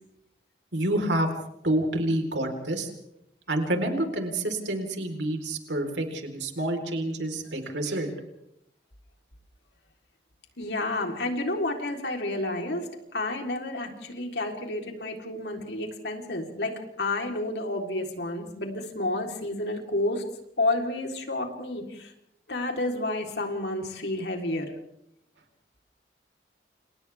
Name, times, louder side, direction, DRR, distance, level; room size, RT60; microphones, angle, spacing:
voice 1, 0.7-1.3 1.6-2.9 3.5-8.1, right 1 dB, 90° right, 3 dB, 4.3 m, -28 dB
voice 2, 10.6-20.2 20.6-22.1 22.5-24.7, left 2 dB, 75° left, 2 dB, 3.9 m, -30 dB
29.5 x 29.0 x 3.6 m, 0.78 s
head